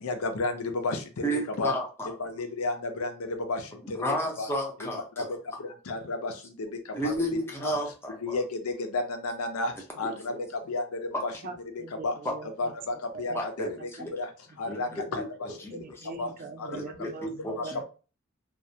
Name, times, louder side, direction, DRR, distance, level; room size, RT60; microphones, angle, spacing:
voice 1, 0.0-1.0 1.6-1.7 2.2-4.0 4.4-4.5 5.2-5.4 5.9-6.3 7.0-7.2 7.6-7.8 8.2-9.7 10.0-10.3 10.7-11.3 12.0-12.1 12.6-13.9 14.2-14.3 14.6-15.2 16.2-16.3 16.6-16.8 17.2-17.3 17.6-17.7, left 2 dB, 80° left, 6 dB, 0.5 m, -31 dB
voice 2, 1.2-2.1 3.8-5.6 6.9-8.4 10.0-10.4 11.1-11.2 12.2-12.3 13.3-14.1 14.7-16.3 16.7-17.8, equal, 10° left, 0 dB, 0.5 m, -33 dB
voice 3, 11.4-12.7 13.1-13.4 14.0-14.1 14.5-15.2 15.7-17.8, right 3 dB, 40° right, 6 dB, 0.4 m, -43 dB
2.3 x 2.1 x 2.7 m, 0.34 s
head